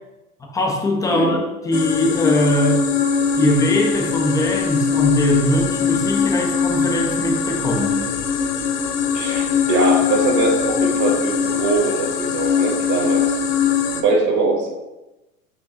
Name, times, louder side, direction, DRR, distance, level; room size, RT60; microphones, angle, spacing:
voice 1, 0.5-2.8 3.4-8.1, equal, 10° left, 1 dB, 0.4 m, -21 dB
sound 1, 1.7-14.0, left 6 dB, 85° left, 0.6 m, -21 dB
voice 2, 9.1-13.3 13.9-14.7, right 3 dB, 40° right, 1 dB, 1.2 m, -21 dB
4.7 x 3.7 x 2.8 m, 1.0 s
hypercardioid pair, 105°, 45 cm